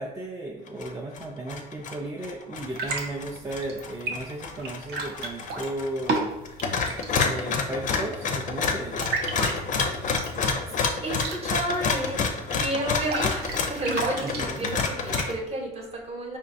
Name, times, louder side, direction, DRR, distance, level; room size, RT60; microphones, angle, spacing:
voice 1, 0.0-6.3 7.2-9.1 14.2-14.7, right 2 dB, 15° right, -2 dB, 0.4 m, -35 dB
sound 1, 0.7-0.9 1.2-2.0 2.2-6.2 6.4-15.3, left 5 dB, 50° left, 0.5 m, -28 dB
sound 2, 2.6-15.3, right 3 dB, 70° right, 0.7 m, -35 dB
voice 2, 11.0-16.4, right 1 dB, 35° right, 0 dB, 0.9 m, -31 dB
4.3 x 2.6 x 2.5 m, 0.94 s
cardioid pair, 110°, 17 cm